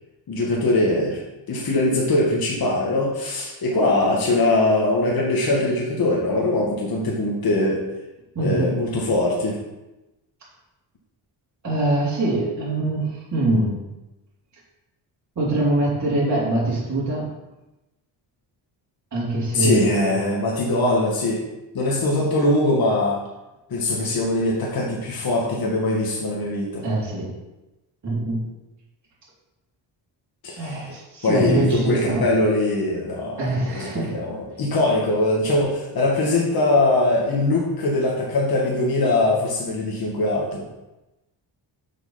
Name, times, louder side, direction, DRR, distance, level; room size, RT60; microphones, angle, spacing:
voice 1, 0.3-1.2 1.5-7.8 8.4-9.6 19.5-21.4 21.7-23.2 23.7-26.8 30.4-30.8 31.2-40.6, left 2 dB, 50° left, -3 dB, 1.9 m, -22 dB
voice 2, 8.3-8.7 11.6-13.8 15.3-17.3 19.1-20.1 26.8-27.3 28.0-28.4 30.6-32.2 33.4-34.2, right 2 dB, 40° right, -8 dB, 3.4 m, -23 dB
6.5 x 6.0 x 5.7 m, 1.0 s
cardioid pair, 115°, 45 cm